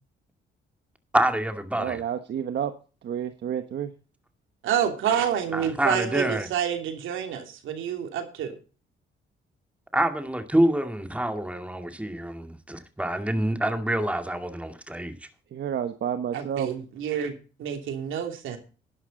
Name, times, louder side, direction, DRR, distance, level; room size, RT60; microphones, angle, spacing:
voice 1, 1.1-2.0 5.5-6.5 9.9-15.2, right 1 dB, 5° right, 2.2 m, -26 dB
voice 2, 1.8-2.7 3.0-3.9 15.5-16.7, right 9 dB, 60° right, 1.3 m, -30 dB
voice 3, 4.6-8.5 16.3-18.6, right 9 dB, 85° right, 2.8 m, -28 dB
11.5 x 11.0 x 4.0 m
cardioid pair, 90°, 20 cm